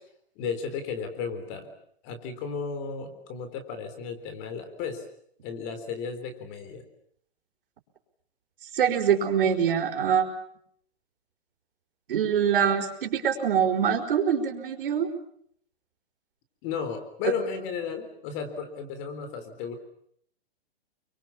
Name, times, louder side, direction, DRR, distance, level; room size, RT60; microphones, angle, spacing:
voice 1, 0.4-1.7 2.0-5.1 5.4-6.8 16.6-19.8, left 6 dB, 25° left, 9 dB, 3.7 m, -34 dB
voice 2, 8.7-10.3 12.1-15.1 17.2-17.3, right 8 dB, 55° right, 4 dB, 4.9 m, -24 dB
29.5 x 24.0 x 7.2 m, 0.67 s
hypercardioid pair, 170°, 32 cm